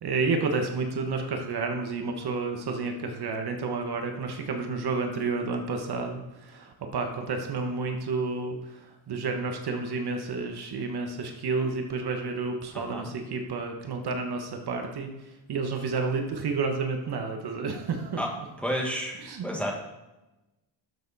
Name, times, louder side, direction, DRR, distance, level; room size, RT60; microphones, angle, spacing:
voice 1, 0.0-15.1 15.5-18.2 19.2-19.5, right 4 dB, 55° right, 4 dB, 1.2 m, -30 dB
voice 2, 12.7-13.1 18.2-18.3 18.6-19.2 19.4-19.7, equal, 5° left, -1 dB, 1.6 m, -30 dB
12.0 x 6.8 x 4.1 m, 1.0 s
wide cardioid pair, 165°, 45 cm